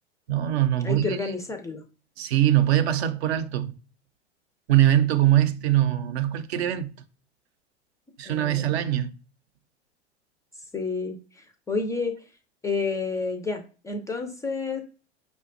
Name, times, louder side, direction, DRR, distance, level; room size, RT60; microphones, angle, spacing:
voice 1, 0.3-1.2 2.2-3.8 4.7-6.9 8.2-9.1, right 12 dB, 60° right, 0.6 m, -22 dB
voice 2, 0.8-1.8 8.2-8.7 10.7-12.3 12.6-14.8, left 4 dB, 10° left, 0.3 m, -30 dB
5.0 x 2.2 x 2.5 m
figure-of-eight pair, 85°, 35 cm